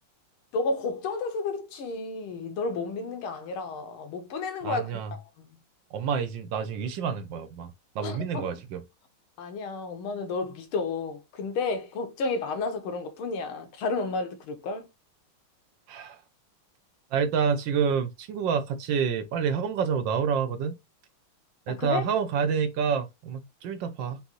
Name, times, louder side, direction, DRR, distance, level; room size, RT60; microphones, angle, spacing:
voice 1, 0.5-4.8 5.1-5.5 8.0-8.4 9.4-14.9 21.7-22.0, left 3 dB, 85° left, 1.8 m, -31 dB
voice 2, 4.6-5.1 5.9-8.8 15.9-16.2 17.1-20.8 21.7-24.2, right 6 dB, 70° right, 1.2 m, -28 dB
5.3 x 2.6 x 2.9 m
omnidirectional pair, 2.3 m